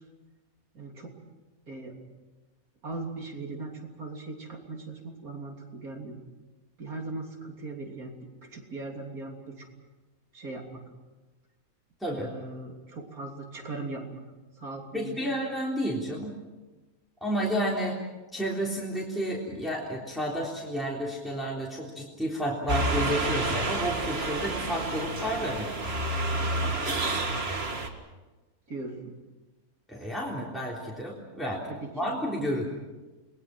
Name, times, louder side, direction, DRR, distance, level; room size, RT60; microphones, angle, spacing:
voice 1, 0.7-1.1 1.7-2.0 2.8-6.2 6.8-8.1 8.4-9.7 10.3-10.8 12.1-14.2 14.6-15.2 28.7-29.1 31.7-31.9, right 2 dB, 75° right, 1 dB, 3.7 m, -39 dB
voice 2, 12.0-12.3 14.9-16.3 17.2-18.0 18.3-25.9 29.9-31.6 31.9-32.6, equal, ahead, -4 dB, 3.6 m, -31 dB
sound 1, 22.7-27.9, right 2 dB, 45° right, 2.1 m, -29 dB
30.0 x 21.0 x 6.1 m, 1.2 s
omnidirectional pair, 1.5 m